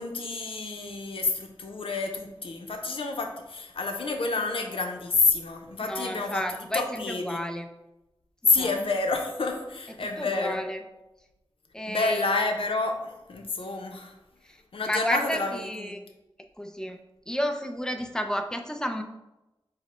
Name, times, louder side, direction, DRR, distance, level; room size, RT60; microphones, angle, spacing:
voice 1, 0.0-6.4 6.7-7.4 8.5-10.6 11.9-14.1 14.7-15.5 15.8-16.0, left 3 dB, 85° left, 3 dB, 0.5 m, -28 dB
voice 2, 5.8-7.7 8.6-8.7 9.9-10.8 11.7-12.3 14.4-14.6 14.9-16.0 16.6-17.0 17.3-19.0, equal, 5° left, 6 dB, 0.4 m, -31 dB
5.0 x 2.1 x 4.2 m, 0.97 s
wide cardioid pair, 70°, 9 cm